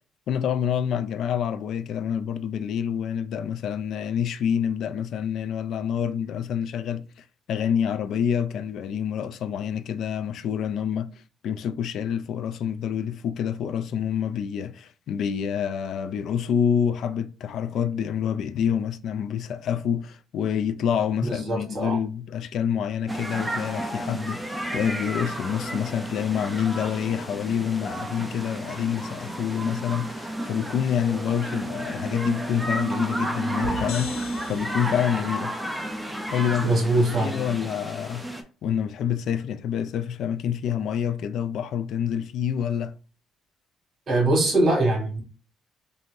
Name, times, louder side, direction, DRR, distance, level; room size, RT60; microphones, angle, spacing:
voice 1, 0.3-7.0 7.5-11.1 11.4-35.5 36.3-36.7 37.2-38.2 38.6-42.9, left 8 dB, 60° left, 0.3 m, -27 dB
voice 2, 21.2-22.0 36.6-37.4 44.1-45.2, right 2 dB, 40° right, 1.6 m, -22 dB
sound 1, 23.1-38.4, right 1 dB, 5° right, 0.5 m, -32 dB
sound 2, 33.6-35.3, left 3 dB, 90° left, 1.2 m, -36 dB
4.4 x 2.6 x 2.6 m
cardioid pair, 155°, 0 cm